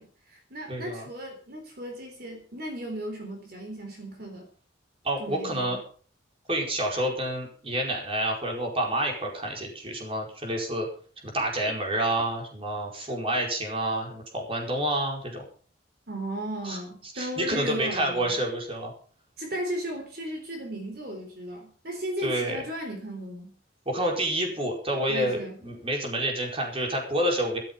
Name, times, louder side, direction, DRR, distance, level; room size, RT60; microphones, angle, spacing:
voice 1, 0.0-4.5 5.2-5.8 16.1-18.4 19.4-23.5 25.1-25.6, equal, 55° right, 3 dB, 3.9 m, -36 dB
voice 2, 0.7-1.1 5.0-5.8 6.5-10.9 11.2-15.4 16.6-16.8 17.1-18.9 22.2-22.6 23.9-27.6, right 1 dB, 30° right, 1 dB, 4.7 m, -28 dB
13.5 x 13.5 x 5.7 m, 0.42 s
head